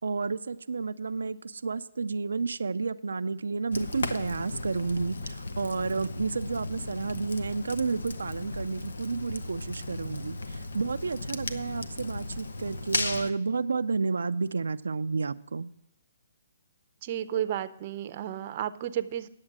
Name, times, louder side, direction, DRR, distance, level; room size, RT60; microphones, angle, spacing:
voice 1, 0.0-15.7, right 4 dB, 90° right, 10 dB, 0.4 m, -31 dB
Fire, 3.7-13.3, left 2 dB, 90° left, 0.9 m, -36 dB
voice 2, 17.0-19.3, right 11 dB, 40° right, 12 dB, 0.6 m, -32 dB
9.8 x 7.3 x 6.0 m, 0.86 s
hypercardioid pair, 150°, 0 cm